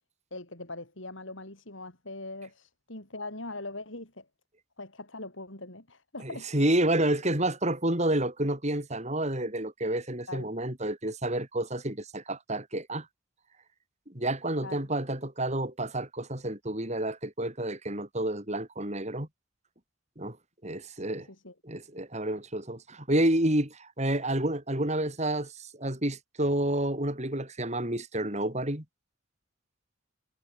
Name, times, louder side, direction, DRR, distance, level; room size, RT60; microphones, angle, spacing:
voice 1, 0.3-4.3 4.8-6.5 10.3-10.5 14.6-14.9 21.0-21.5, left 2 dB, 70° left, 7.3 m, -41 dB
voice 2, 6.5-13.1 14.1-19.3 20.2-20.4 20.6-21.3 21.6-28.8, right 1 dB, 35° right, 5.0 m, -29 dB
head